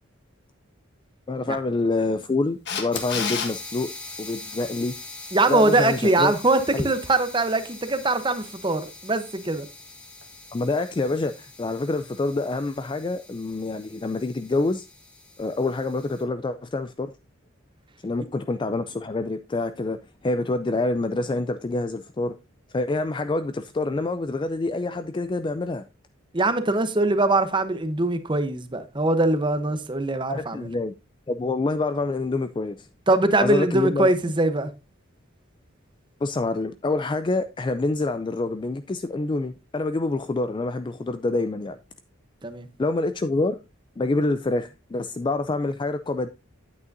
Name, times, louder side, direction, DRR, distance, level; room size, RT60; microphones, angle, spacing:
voice 1, 1.3-3.9 4.2-4.9 5.5-6.3 6.7-6.9 10.5-14.9 15.4-17.1 18.0-20.0 20.2-22.3 22.7-25.8 30.3-30.9 31.3-32.9 33.4-34.1 36.2-41.8 42.8-43.6 44.0-46.3, left 2 dB, 25° left, 0.3 m, -26 dB
Camera, 2.7-3.5 10.2-10.3, left 6 dB, 55° left, 1.4 m, -28 dB
sound 1, 2.9-16.2, left 2 dB, 5° left, 1.4 m, -43 dB
voice 2, 5.3-9.7 26.3-30.7 33.1-34.7 42.4-42.7, right 2 dB, 25° right, 0.8 m, -22 dB
9.4 x 8.4 x 2.6 m
head